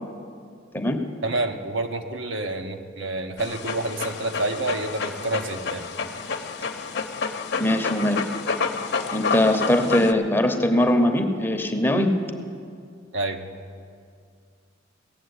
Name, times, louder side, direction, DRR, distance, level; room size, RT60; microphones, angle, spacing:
voice 1, 1.2-5.9 13.1-13.4, right 2 dB, 70° right, 5 dB, 1.0 m, -28 dB
Dog, 3.4-10.1, left 5 dB, 60° left, 0.8 m, -29 dB
voice 2, 7.6-8.2 9.1-12.1, left 1 dB, 10° left, 5 dB, 0.9 m, -21 dB
16.5 x 7.6 x 9.6 m, 2.2 s
head